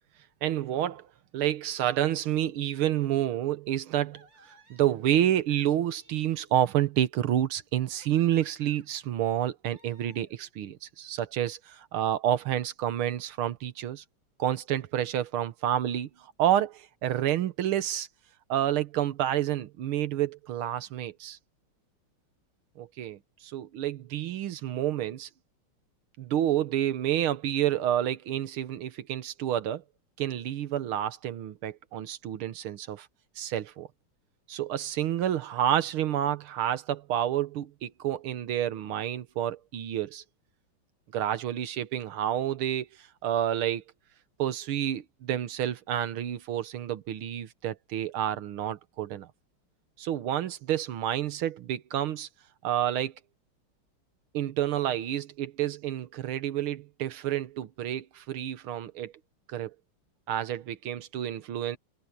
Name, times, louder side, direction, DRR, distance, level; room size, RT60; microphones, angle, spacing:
voice 1, 0.4-1.1 1.3-4.3 4.7-14.0 14.4-18.1 18.5-21.4 22.8-25.3 26.2-29.8 30.2-33.1 33.4-33.9 34.5-40.2 41.1-43.8 44.4-49.3 50.0-52.3 52.6-53.1 54.3-59.1 59.5-59.7 60.3-61.8, right 11 dB, 80° right, 1.9 m, -29 dB
sound 1, 3.0-3.5 4.1-5.3 5.7-7.0 7.6-8.9 9.7-10.5, right 3 dB, 60° right, 6.2 m, -61 dB
omnidirectional pair, 2.3 m